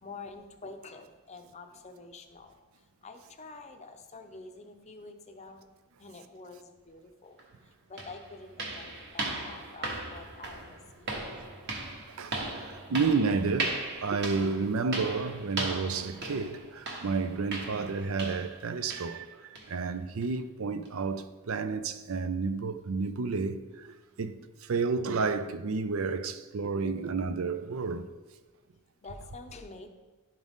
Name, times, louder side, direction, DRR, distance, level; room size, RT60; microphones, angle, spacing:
voice 1, 0.0-2.7 3.0-5.7 6.0-7.4 7.9-11.2 29.0-29.9, left 3 dB, 30° left, 0.6 m, -47 dB
sound 1, 7.4-7.5 8.0-18.6 18.9-19.2 19.6-19.7 20.2-20.3 20.9-21.0, right 2 dB, 50° right, 1.1 m, -38 dB
voice 2, 12.1-23.9 24.2-28.1, right 4 dB, 70° right, 0.5 m, -31 dB
11.5 x 3.9 x 3.6 m
head